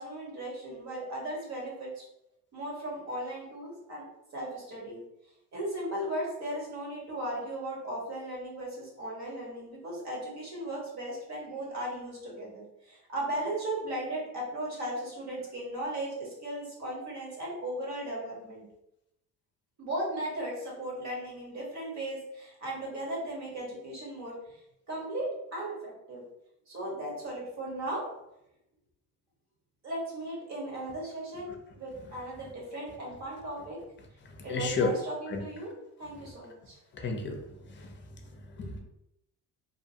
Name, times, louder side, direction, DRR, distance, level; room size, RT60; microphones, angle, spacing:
voice 1, 0.0-2.0 2.5-4.1 4.3-5.0 5.5-18.6 19.8-24.6 24.9-26.2 26.7-28.1 29.8-33.8 34.4-35.7 36.0-36.8, right 1 dB, 50° right, -3 dB, 1.3 m, -37 dB
voice 2, 34.5-34.9 35.3-35.4 36.9-37.4 37.7-37.9 38.6-38.8, left 4 dB, 30° left, 3 dB, 0.6 m, -31 dB
2.8 x 2.1 x 2.8 m, 0.84 s
cardioid pair, 105°, 36 cm